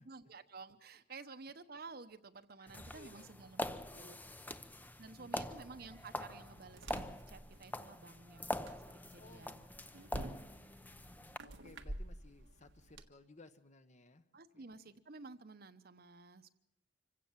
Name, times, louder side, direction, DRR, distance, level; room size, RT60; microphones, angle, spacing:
voice 1, 0.0-4.2 5.0-9.7 14.3-16.5, right 4 dB, 55° right, 10 dB, 1.0 m, -53 dB
voice 2, 2.6-3.3 3.9-4.6 5.2-5.6 9.2-9.4 10.2-14.2 14.5-14.6, left 2 dB, 40° left, 10 dB, 1.2 m, -60 dB
sound 1, 2.7-11.4, left 1 dB, 10° left, 0.7 m, -44 dB
sound 2, 5.7-13.1, right 1 dB, 85° right, 1.5 m, -50 dB
25.5 x 16.5 x 7.4 m, 0.78 s
head